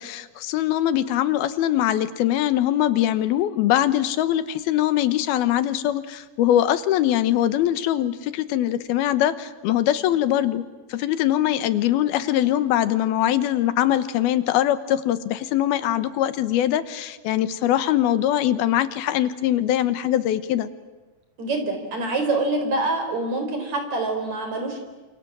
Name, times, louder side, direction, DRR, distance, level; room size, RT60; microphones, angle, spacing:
voice 1, 0.0-20.7, left 12 dB, 90° left, 13 dB, 3.1 m, -22 dB
voice 2, 21.4-24.8, right 2 dB, 50° right, 5 dB, 5.6 m, -25 dB
28.5 x 27.5 x 7.5 m, 1.2 s
omnidirectional pair, 4.3 m